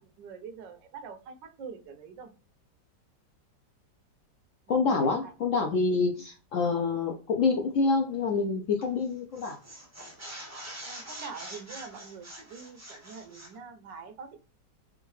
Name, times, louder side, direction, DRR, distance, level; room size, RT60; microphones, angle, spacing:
voice 1, 0.0-2.3 4.7-5.3 10.8-14.4, right 5 dB, 80° right, 8 dB, 1.4 m, -45 dB
voice 2, 4.7-9.6, left 4 dB, 70° left, 3 dB, 0.7 m, -27 dB
sound 1, 8.8-9.1 9.3-13.6, right 1 dB, 15° right, 0.6 m, -44 dB
3.7 x 3.5 x 3.1 m, 0.35 s
omnidirectional pair, 1.9 m